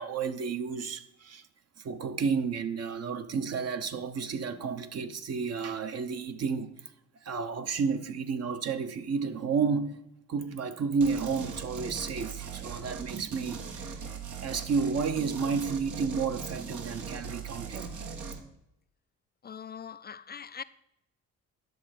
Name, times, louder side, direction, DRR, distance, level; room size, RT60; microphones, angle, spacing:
voice 1, 0.0-1.5 1.8-6.9 7.2-10.0 10.3-14.0 14.4-18.0, right 5 dB, 55° right, 1.1 m, -31 dB
sound 1, 11.0-18.4, right 5 dB, 75° right, 1.6 m, -40 dB
voice 2, 19.4-20.6, left 7 dB, 35° left, 0.4 m, -42 dB
11.0 x 6.7 x 5.9 m
cardioid pair, 90°, 30 cm